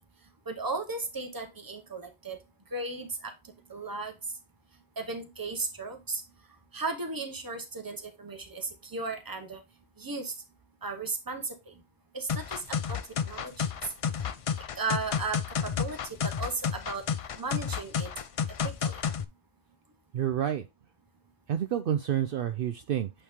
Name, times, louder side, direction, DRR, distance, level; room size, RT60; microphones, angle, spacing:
voice 1, 0.5-2.4 2.7-3.3 3.7-4.1 5.0-6.2 6.7-9.6 10.0-10.3 10.8-11.8 12.1-13.0 13.2-13.7 14.8-17.1 17.4-18.1 18.6-19.0, right 3 dB, 20° right, 0.9 m, -35 dB
sound 1, 12.3-19.2, left 7 dB, 60° left, 0.3 m, -31 dB
voice 2, 20.1-20.7 21.5-23.1, right 10 dB, 65° right, 0.7 m, -29 dB
8.6 x 3.3 x 3.6 m
omnidirectional pair, 1.1 m